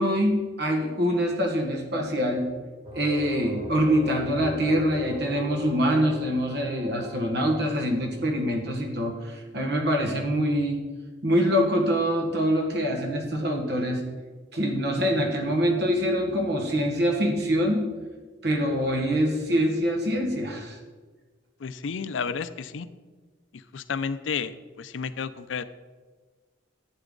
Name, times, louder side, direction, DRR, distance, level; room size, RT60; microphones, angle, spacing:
voice 1, 0.0-2.5 3.0-10.8 11.2-14.0 14.5-17.8 18.4-20.8, equal, 60° right, 2 dB, 1.6 m, -25 dB
sound 1, 2.8-8.5, right 1 dB, 30° right, 2.3 m, -39 dB
voice 2, 21.6-22.9 23.7-25.6, left 6 dB, 90° left, 14 dB, 0.5 m, -31 dB
11.0 x 8.1 x 3.9 m, 1.4 s
head